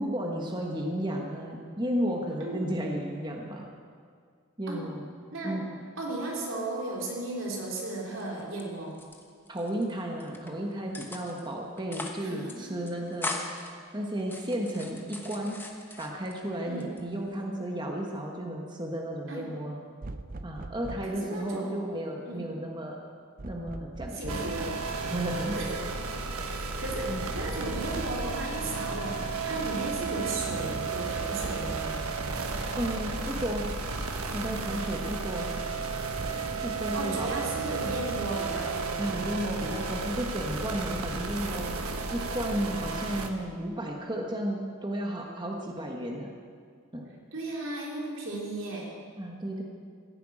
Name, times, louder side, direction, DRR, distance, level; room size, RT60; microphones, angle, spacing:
voice 1, 0.0-3.6 4.6-5.1 5.4-5.7 9.5-15.6 16.0-19.8 20.4-23.0 23.4-24.5 25.1-25.6 26.1-26.2 27.1-27.3 32.7-33.7 34.3-35.5 36.6-37.3 39.0-46.3 46.9-47.0 49.2-49.6, right 1 dB, 20° right, 0 dB, 1.4 m, -33 dB
voice 2, 6.0-9.0 12.2-12.8 16.6-16.9 19.3-19.5 21.1-21.9 22.3-22.5 24.1-24.7 25.3-25.8 26.3-32.0 36.9-39.0 47.3-48.9, right 2 dB, 60° right, -2 dB, 3.6 m, -35 dB
sound 1, 7.6-8.6 8.9-9.8 10.2-10.5 10.9-11.5 11.8-12.2 12.5-12.6 12.9-13.7 14.2-16.4 16.8-17.4, left 2 dB, 10° left, 1.1 m, -40 dB
sound 2, 20.0-21.2 23.4-24.6 27.3-28.6 31.1-34.3 36.2-36.3, right 2 dB, 40° right, 0.5 m, -41 dB
sound 3, 24.3-43.3, right 4 dB, 85° right, 1.4 m, -33 dB
15.5 x 10.5 x 8.7 m, 2.1 s
head